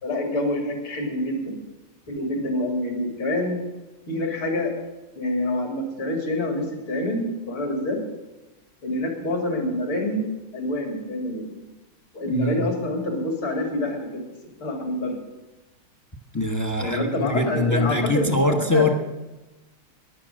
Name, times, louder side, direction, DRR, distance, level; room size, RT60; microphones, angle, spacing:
voice 1, 0.0-1.6 2.1-3.6 4.1-4.7 5.2-8.0 8.8-10.2 10.5-11.7 12.1-14.2 14.6-15.1 16.8-18.9, left 1 dB, 70° left, 2 dB, 3.8 m, -27 dB
voice 2, 12.3-12.7 16.3-18.9, left 1 dB, 30° left, 5 dB, 0.3 m, -23 dB
14.5 x 10.5 x 7.6 m, 1.1 s
omnidirectional pair, 2.3 m